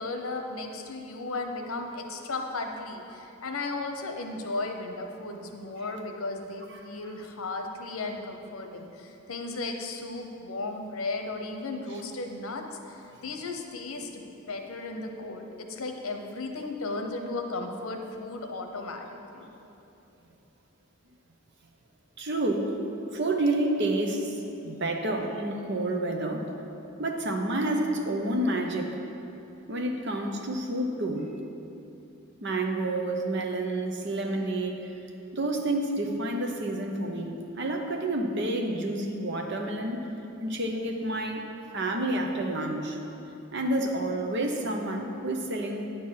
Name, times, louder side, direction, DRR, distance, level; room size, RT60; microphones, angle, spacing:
voice 1, 0.0-19.5, left 3 dB, 85° left, 4 dB, 0.9 m, -35 dB
voice 2, 22.2-22.8 23.1-24.4 24.6-26.5 27.0-29.0 29.7-31.3 32.4-34.9 35.3-40.1 40.4-41.5 41.7-43.0 43.5-45.9, right 1 dB, 55° right, 2 dB, 0.9 m, -29 dB
9.9 x 4.7 x 7.4 m, 2.9 s
head